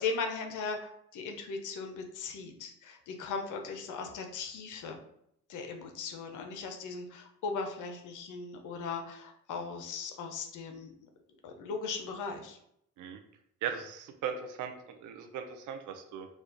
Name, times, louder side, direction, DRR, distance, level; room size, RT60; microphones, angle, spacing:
voice 1, 0.0-5.0 5.5-10.9 11.4-12.6, left 4 dB, 80° left, 4 dB, 0.8 m, -38 dB
voice 2, 13.6-14.7 15.0-16.3, right 7 dB, 85° right, 6 dB, 0.7 m, -38 dB
4.8 x 2.4 x 3.9 m, 0.74 s
cardioid pair, 90°, 30 cm